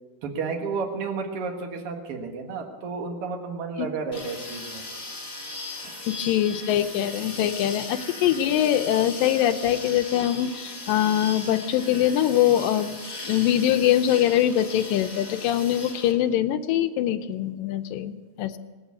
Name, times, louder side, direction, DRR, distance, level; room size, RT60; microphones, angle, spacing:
voice 1, 0.2-4.8, right 4 dB, 50° right, 3 dB, 2.2 m, -32 dB
sound 1, 4.1-16.1, left 2 dB, 25° left, 3.6 m, -38 dB
voice 2, 6.1-13.0 13.2-18.6, left 11 dB, 80° left, 7 dB, 2.3 m, -23 dB
18.5 x 8.9 x 8.4 m, 1.3 s
omnidirectional pair, 4.1 m